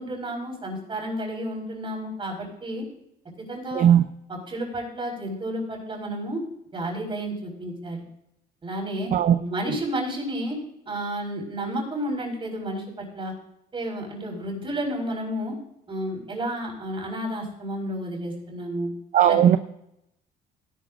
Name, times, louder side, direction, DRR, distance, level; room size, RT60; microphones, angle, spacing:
voice 1, 0.0-2.8 3.5-3.9 4.3-6.4 6.7-8.0 8.6-9.1 9.4-10.6 10.8-13.3 13.7-15.5 15.9-18.9 19.3-19.4, right 1 dB, 30° right, 0 dB, 5.1 m, -31 dB
voice 2, 19.1-19.6, right 10 dB, 50° right, 10 dB, 0.6 m, -17 dB
17.5 x 11.5 x 2.5 m, 0.80 s
cardioid pair, 110°, 17 cm